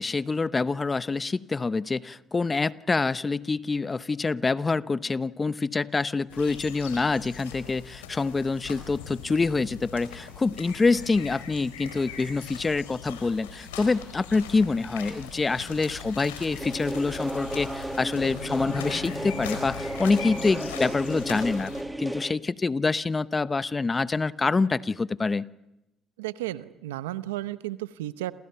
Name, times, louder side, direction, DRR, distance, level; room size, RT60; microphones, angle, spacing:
voice 1, 0.0-21.7 22.0-25.5, left 3 dB, 25° left, 16 dB, 0.9 m, -26 dB
sound 1, 6.3-21.8, left 7 dB, 90° left, 4.5 m, -41 dB
sound 2, 16.6-22.3, right 1 dB, 10° right, 1.5 m, -34 dB
voice 2, 26.2-28.3, right 15 dB, 85° right, 14 dB, 0.8 m, -33 dB
29.0 x 27.5 x 5.7 m, 0.91 s
hypercardioid pair, 60°, 0 cm